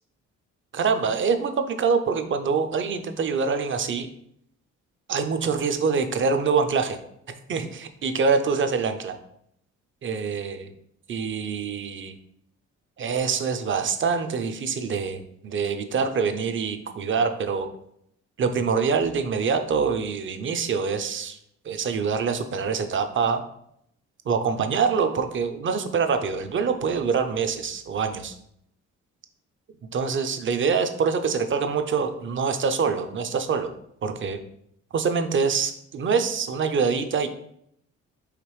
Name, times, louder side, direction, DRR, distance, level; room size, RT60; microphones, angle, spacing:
voice 1, 0.7-4.1 5.1-7.0 7.5-9.2 10.0-10.6 11.1-12.2 13.0-17.7 18.4-21.4 21.6-23.4 24.3-28.3 29.9-33.7 34.0-34.4 34.9-37.3, right 5 dB, 40° right, 8 dB, 0.6 m, -25 dB
4.9 x 3.0 x 3.2 m, 0.72 s
cardioid pair, 90°, 30 cm